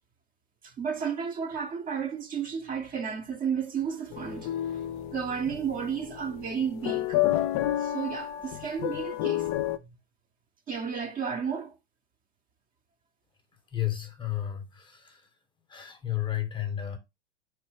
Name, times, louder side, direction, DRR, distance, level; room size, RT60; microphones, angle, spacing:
voice 1, 0.6-7.2 7.8-9.5 10.7-11.8, right 7 dB, 25° right, 0.7 m, -33 dB
sound 1, 4.1-9.8, left 13 dB, 40° left, 0.5 m, -30 dB
voice 2, 13.7-15.3 15.7-17.0, left 12 dB, 15° left, 0.8 m, -32 dB
4.4 x 3.1 x 3.3 m
hypercardioid pair, 100°, 34 cm